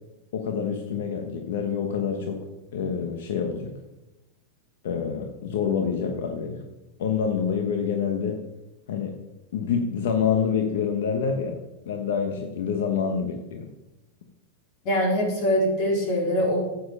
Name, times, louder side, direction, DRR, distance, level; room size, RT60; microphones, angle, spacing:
voice 1, 0.3-2.4 2.7-3.7 4.8-6.6 7.0-8.4 8.9-9.1 9.5-11.6 11.9-13.7, left 6 dB, 75° left, 4 dB, 1.2 m, -27 dB
voice 2, 14.8-16.7, equal, 45° left, -1 dB, 4.1 m, -23 dB
9.9 x 8.9 x 5.5 m, 1.0 s
supercardioid pair, 145°, 0 cm